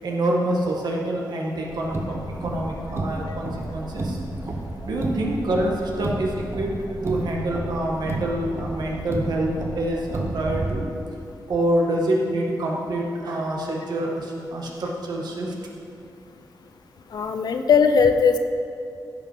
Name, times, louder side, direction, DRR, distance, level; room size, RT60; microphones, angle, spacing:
voice 1, 0.0-4.2 4.8-10.8 11.5-15.5, right 1 dB, 65° right, -2 dB, 1.8 m, -26 dB
Car, 1.7-10.7, right 2 dB, 35° right, 1.1 m, -31 dB
voice 2, 17.1-18.4, left 6 dB, 65° left, 7 dB, 0.7 m, -18 dB
15.5 x 5.6 x 5.0 m, 2.6 s
wide cardioid pair, 165°, 7 cm